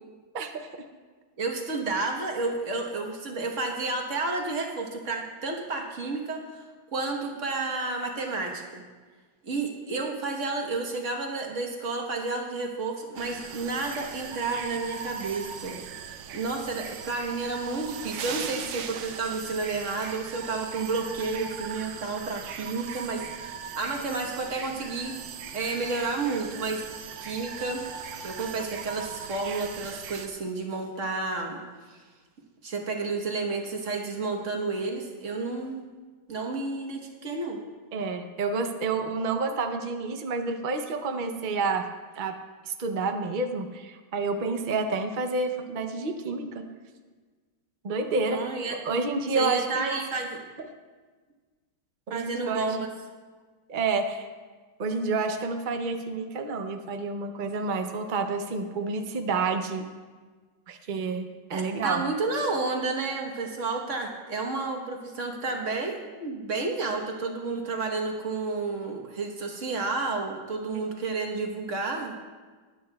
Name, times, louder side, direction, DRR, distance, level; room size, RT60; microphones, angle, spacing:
voice 1, 1.4-6.4 6.9-8.8 9.4-15.8 16.3-25.1 25.5-26.8 27.2-27.8 28.2-31.6 31.9-32.0 32.6-35.8 36.3-37.6 48.3-48.8 49.3-50.4 52.1-52.9 61.5-72.2, right 3 dB, 45° right, 2 dB, 1.4 m, -31 dB
sound 1, 13.2-30.3, right 7 dB, 90° right, 1.4 m, -39 dB
voice 2, 37.9-41.9 42.2-42.4 42.7-46.6 47.8-48.4 48.8-50.0 52.1-52.7 53.7-54.3 54.8-59.9 60.7-62.1 70.7-70.8, right 3 dB, 65° right, 6 dB, 0.4 m, -29 dB
22.0 x 8.6 x 2.3 m, 1.4 s
omnidirectional pair, 1.9 m